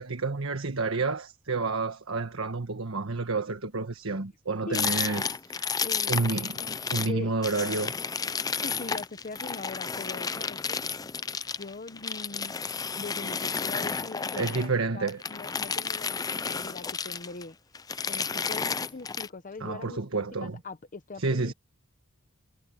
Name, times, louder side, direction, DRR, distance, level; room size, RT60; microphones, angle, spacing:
voice 1, 0.0-5.7 6.1-6.6 6.9-7.9 14.4-15.2 19.6-20.6 21.2-21.5, right 3 dB, 65° right, 1.4 m, -30 dB
sound 1, 4.7-7.1 7.4-14.7 15.1-17.4 17.7-19.3, left 5 dB, 15° left, 0.4 m, -32 dB
voice 2, 5.8-6.3 6.6-7.3 8.6-10.8 11.6-12.5 12.9-17.5 18.0-21.5, left 3 dB, 40° left, 0.9 m, -41 dB
head